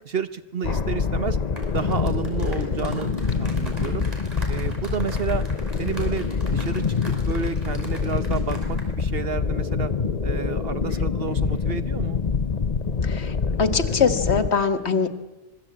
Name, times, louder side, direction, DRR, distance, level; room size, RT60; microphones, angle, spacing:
voice 1, 0.0-1.4 1.7-4.1 4.5-5.4 5.8-9.9 10.2-12.2, right 6 dB, 65° right, 11 dB, 1.3 m, -30 dB
sound 1, 0.6-14.5, left 5 dB, 40° left, 1.0 m, -25 dB
sound 2, 1.4-8.9 9.2-9.4, equal, 35° right, 5.5 m, -42 dB
voice 2, 13.0-13.3 13.6-15.1, left 5 dB, 80° left, 9 dB, 1.8 m, -22 dB
25.5 x 21.5 x 8.7 m, 1.1 s
omnidirectional pair, 1.1 m